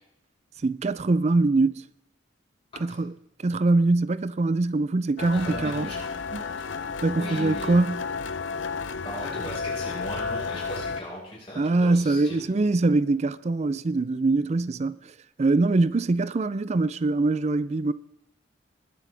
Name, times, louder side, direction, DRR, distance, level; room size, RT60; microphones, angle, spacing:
voice 1, 0.6-1.8 2.8-3.1 3.4-5.9 6.3-6.4 7.0-8.0 11.6-15.0 15.4-17.9, right 3 dB, 35° right, 0.4 m, -23 dB
sound 1, 5.2-11.0, left 5 dB, 75° left, 0.6 m, -32 dB
voice 2, 5.3-6.9 7.1-7.8 9.0-12.4, equal, 30° left, 4.8 m, -38 dB
sound 2, 11.6-13.3, left 1 dB, 15° left, 3.3 m, -55 dB
20.0 x 9.7 x 3.4 m
head